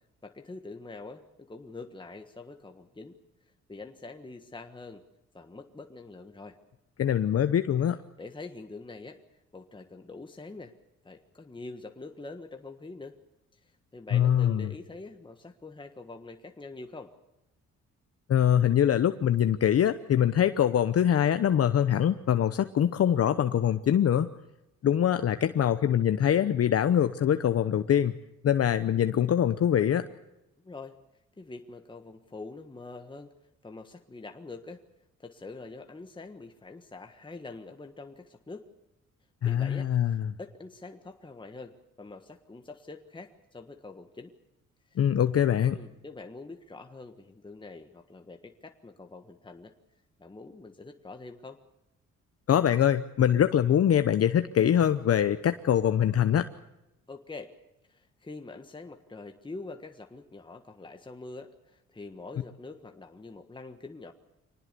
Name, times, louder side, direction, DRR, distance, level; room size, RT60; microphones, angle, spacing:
voice 1, 0.2-3.2 3.7-5.0 5.3-6.6 8.2-9.2 9.5-10.7 11.0-13.2 13.5-17.1 30.6-31.0 31.4-33.3 33.6-34.8 35.2-38.7 39.4-44.3 44.9-45.0 45.7-49.7 50.2-51.6 57.1-57.5 57.9-64.1, left 3 dB, 15° left, 5 dB, 1.5 m, -45 dB
voice 2, 7.0-8.0 14.1-14.7 18.3-24.3 24.8-28.1 28.4-30.1 39.4-40.3 45.0-45.8 52.5-56.5, left 9 dB, 50° left, 10 dB, 0.9 m, -23 dB
24.5 x 19.0 x 6.9 m, 0.93 s
cardioid pair, 90°, 30 cm